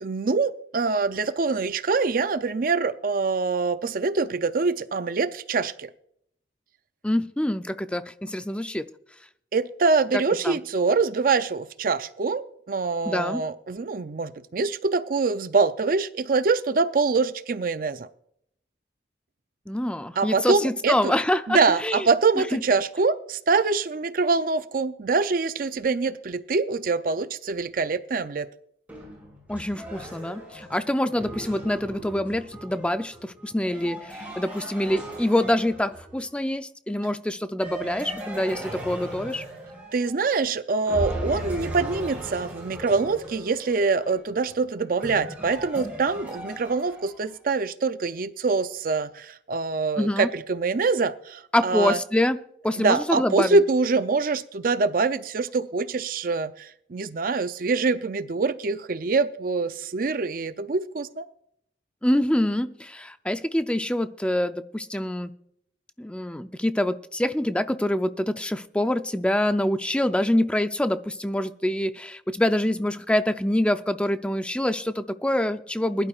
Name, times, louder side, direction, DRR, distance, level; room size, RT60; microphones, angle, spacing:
voice 1, 0.0-5.9 9.5-18.1 20.2-21.1 21.5-28.5 39.9-52.0 52.8-61.3, right 4 dB, 50° right, 12 dB, 0.5 m, -24 dB
voice 2, 7.0-8.9 10.1-10.6 13.0-13.4 19.7-22.1 22.5-22.6 29.5-39.4 50.0-50.3 51.5-52.4 52.6-53.6 62.0-65.3 66.0-76.1, left 1 dB, 5° left, 10 dB, 0.5 m, -25 dB
sound 1, 28.9-36.3 37.6-40.5 40.9-47.3, right 1 dB, 10° right, 5.8 m, -37 dB
21.0 x 11.5 x 2.4 m, 0.70 s
head